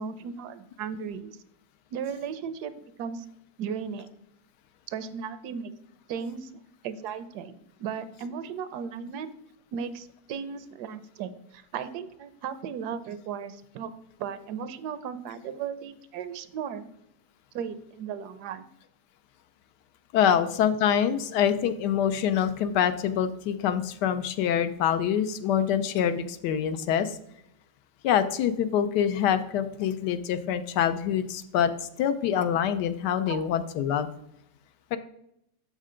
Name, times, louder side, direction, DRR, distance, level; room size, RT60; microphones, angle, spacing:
voice 1, 0.0-1.4 1.9-3.3 3.6-4.1 4.9-5.7 6.1-9.3 9.7-13.9 14.2-16.9 17.5-18.7 20.3-20.4 33.3-33.4, right 7 dB, 75° right, 13 dB, 1.1 m, -36 dB
voice 2, 20.1-27.2 28.0-31.7 32.0-34.1 34.9-35.0, left 9 dB, 85° left, 11 dB, 1.2 m, -25 dB
6.6 x 6.4 x 3.7 m, 0.77 s
omnidirectional pair, 1.8 m